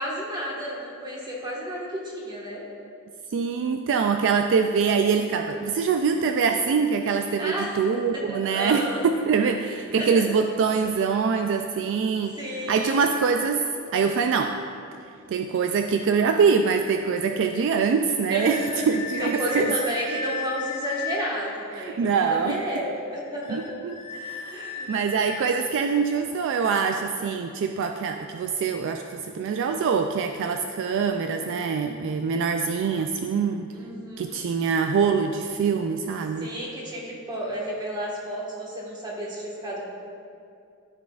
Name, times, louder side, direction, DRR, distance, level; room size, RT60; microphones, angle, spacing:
voice 1, 0.0-2.6 7.4-7.9 8.1-9.0 9.6-10.4 12.4-13.0 18.3-18.8 19.2-23.6 24.5-24.9 33.7-34.5 36.4-39.9, equal, 20° right, -4 dB, 1.5 m, -32 dB
voice 2, 3.3-12.4 12.7-13.7 13.9-14.6 15.3-19.7 21.8-22.6 23.5-33.7 34.2-36.5, right 5 dB, 60° right, 5 dB, 0.3 m, -24 dB
sound 1, 18.5-21.3 23.4-26.0, left 5 dB, 35° left, 1.1 m, -35 dB
13.5 x 5.0 x 2.4 m, 2.4 s
head